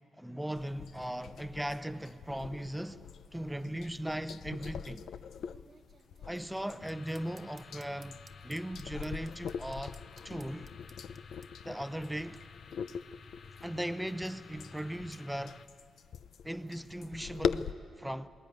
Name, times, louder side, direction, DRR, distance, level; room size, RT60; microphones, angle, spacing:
voice 1, 0.2-3.0 3.3-5.0 6.3-8.2 8.4-10.0 10.2-10.7 11.6-12.4 13.6-15.6 16.4-18.3, right 1 dB, 5° right, 0.6 m, -38 dB
sound 1, 0.5-17.7, left 7 dB, 70° left, 0.5 m, -42 dB
sound 2, 4.6-11.5, right 5 dB, 40° right, 0.8 m, -60 dB
sound 3, 6.8-15.7, left 5 dB, 55° left, 0.9 m, -53 dB
21.0 x 19.5 x 9.3 m
cardioid pair, 115°, 0 cm